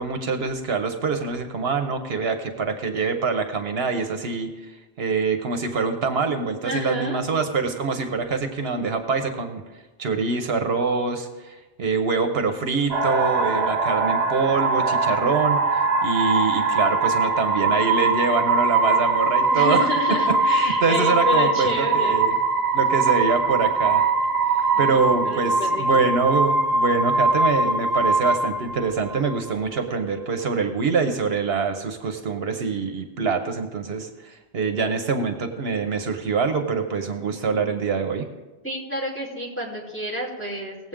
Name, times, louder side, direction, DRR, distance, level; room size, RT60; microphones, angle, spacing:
voice 1, 0.0-4.7 5.0-9.6 10.0-19.9 20.3-22.3 22.7-24.0 24.8-38.3, right 4 dB, 70° right, 6 dB, 1.1 m, -25 dB
voice 2, 6.6-7.2 19.5-22.3 24.7-26.0 38.6-40.8, equal, 10° left, -7 dB, 3.1 m, -29 dB
sound 1, 12.9-29.5, right 3 dB, 45° right, 0.7 m, -22 dB
19.5 x 7.9 x 3.6 m, 1.2 s
omnidirectional pair, 1.1 m